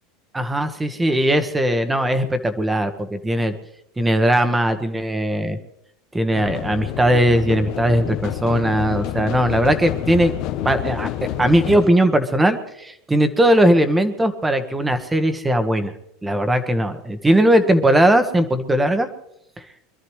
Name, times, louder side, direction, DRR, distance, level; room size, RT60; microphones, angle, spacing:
voice 1, 0.3-3.5 4.0-5.6 6.1-10.3 10.6-11.1 11.4-15.9 16.2-19.1, right 1 dB, 10° right, 9 dB, 1.3 m, -19 dB
sound 1, 6.3-11.9, left 12 dB, 50° left, 0.9 m, -28 dB
25.5 x 13.0 x 3.2 m, 0.76 s
supercardioid pair, 145°, 0 cm